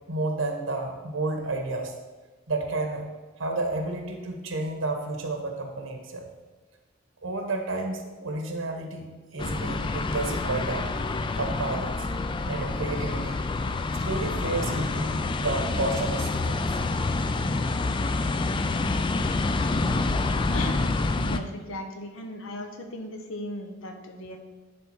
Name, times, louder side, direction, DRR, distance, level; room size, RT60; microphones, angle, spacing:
voice 1, 0.1-1.9 2.5-3.0 3.4-6.3 7.2-9.0 9.3-10.9 11.4-12.1 12.4-13.4 14.0-16.7, right 2 dB, 80° right, 4 dB, 1.1 m, -31 dB
sound 1, 9.4-21.4, left 3 dB, 25° left, 0.3 m, -27 dB
voice 2, 20.5-24.4, left 1 dB, 80° left, 4 dB, 1.0 m, -37 dB
10.5 x 3.5 x 4.5 m, 1.2 s
head